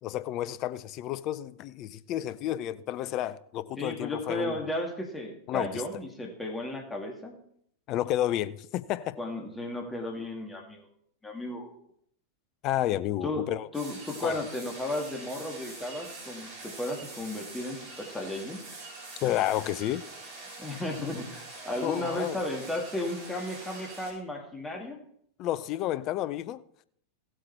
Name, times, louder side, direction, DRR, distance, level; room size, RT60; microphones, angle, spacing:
voice 1, 0.0-4.6 5.5-5.8 7.9-9.2 12.6-13.7 14.2-14.4 19.2-20.0 21.8-22.4 25.4-26.6, left 13 dB, 40° left, 0.5 m, -31 dB
voice 2, 3.8-7.4 9.2-10.9 11.2-11.7 13.2-13.5 13.7-18.6 20.6-25.0, left 1 dB, 10° left, 2.0 m, -34 dB
sound 1, 13.7-24.1, right 3 dB, 40° right, 4.2 m, -44 dB
16.0 x 7.9 x 4.3 m
figure-of-eight pair, 90°, 0 cm